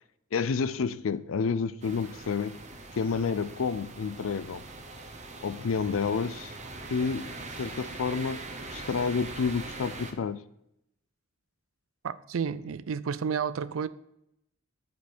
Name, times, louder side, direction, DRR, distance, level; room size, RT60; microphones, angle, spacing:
voice 1, 0.3-2.5 2.9-4.6 5.4-6.5 6.9-8.5 8.7-10.4, left 5 dB, 80° left, 0.5 m, -29 dB
sound 1, 1.8-10.1, right 3 dB, 35° right, 0.9 m, -42 dB
voice 2, 12.0-13.9, right 6 dB, 80° right, 0.4 m, -31 dB
8.2 x 5.2 x 4.3 m
head